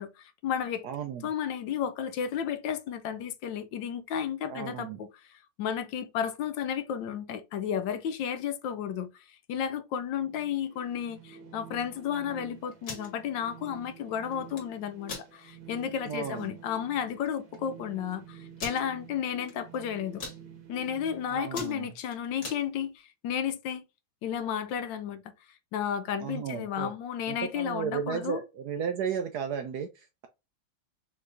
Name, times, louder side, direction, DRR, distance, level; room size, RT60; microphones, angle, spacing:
voice 1, 0.0-0.9 1.2-20.2 20.7-23.8 24.2-25.2 25.7-28.4, left 8 dB, 75° left, 1.3 m, -33 dB
voice 2, 0.8-1.3 4.5-5.0 16.0-16.5 21.3-21.9 26.2-26.9 27.3-30.3, right 7 dB, 75° right, 0.9 m, -34 dB
sound 1, 10.2-22.1, right 7 dB, 50° right, 1.3 m, -50 dB
sound 2, 12.7-13.1 14.3-14.6 15.0-15.3 15.8-15.9 16.2-16.5 17.3-17.4 17.5-17.6 18.6-18.8 19.4-19.8 20.0-20.4 20.9-21.1 21.4-22.6, left 3 dB, 60° left, 2.3 m, -40 dB
5.7 x 3.1 x 2.5 m
omnidirectional pair, 2.1 m